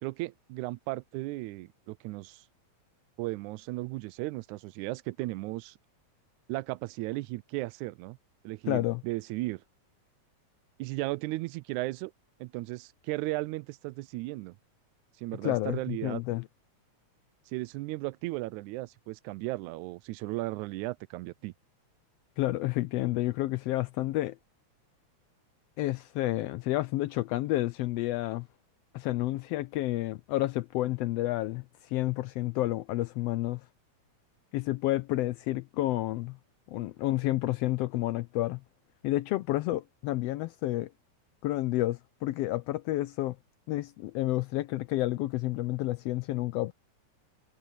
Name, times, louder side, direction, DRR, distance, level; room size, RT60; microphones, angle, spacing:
voice 1, 0.0-2.5 3.2-5.8 6.5-8.2 8.4-9.6 10.8-12.1 12.4-14.6 15.2-16.2 17.5-21.5, right 20 dB, 90° right, 2.0 m, -35 dB
voice 2, 8.7-9.0 15.4-16.4 22.4-24.4 25.8-28.5 28.9-33.6 34.5-36.4 36.7-38.6 39.0-40.9 41.4-43.4 43.7-46.7, left 16 dB, 85° left, 1.4 m, -30 dB
omnidirectional pair, 3.3 m